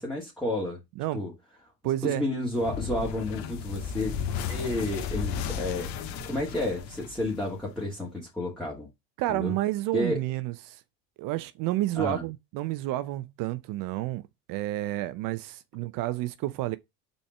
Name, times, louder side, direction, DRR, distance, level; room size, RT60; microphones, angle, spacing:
voice 1, 0.0-0.8 1.1-1.3 2.0-4.1 4.5-5.9 6.2-8.9 9.3-9.5 9.9-10.2 12.0-12.2, left 1 dB, ahead, 2.6 m, -31 dB
voice 2, 1.0-1.3 1.8-2.2 9.2-10.8 11.2-14.2 14.5-16.8, right 16 dB, 55° right, 0.7 m, -30 dB
sound 1, 2.6-7.7, left 7 dB, 70° left, 1.7 m, -34 dB
5.4 x 4.4 x 4.6 m
supercardioid pair, 100°, 38 cm